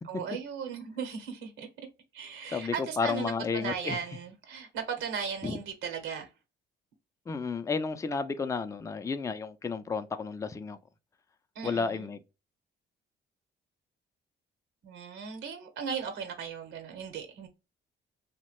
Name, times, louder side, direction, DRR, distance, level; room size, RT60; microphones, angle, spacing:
voice 1, 0.0-1.9 2.1-6.3 11.5-12.2 14.8-17.5, right 6 dB, 85° right, 0.9 m, -37 dB
voice 2, 2.5-4.0 5.4-5.6 7.3-10.8 11.6-12.2, left 5 dB, 15° left, 0.4 m, -32 dB
3.0 x 2.1 x 2.9 m
cardioid pair, 90°, 20 cm